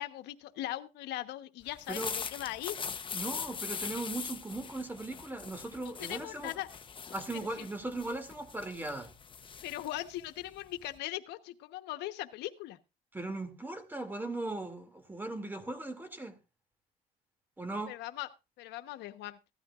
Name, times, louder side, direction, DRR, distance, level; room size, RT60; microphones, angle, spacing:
voice 1, 0.0-2.7 5.8-6.7 7.6-7.7 9.6-12.8 17.9-18.3 18.6-19.4, left 15 dB, 85° left, 1.1 m, -39 dB
sound 1, 1.7-11.0, left 6 dB, 30° left, 0.9 m, -42 dB
voice 2, 3.1-6.5 7.1-9.1 13.1-16.4 17.6-18.0, right 2 dB, 10° right, 2.5 m, -38 dB
16.0 x 13.0 x 2.5 m
cardioid pair, 110°, 17 cm